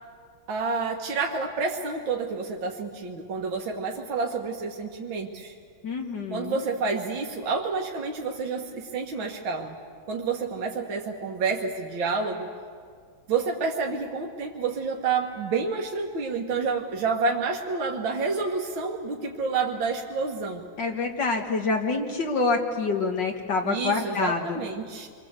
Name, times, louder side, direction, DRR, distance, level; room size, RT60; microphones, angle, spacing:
voice 1, 0.5-5.5 6.3-9.8 10.1-12.5 13.3-20.6 23.6-25.1, right 4 dB, 70° right, 0 dB, 2.3 m, -29 dB
voice 2, 5.8-6.6 20.8-24.6, left 3 dB, 60° left, 2 dB, 2.1 m, -27 dB
28.0 x 23.5 x 8.1 m, 2.1 s
omnidirectional pair, 2.2 m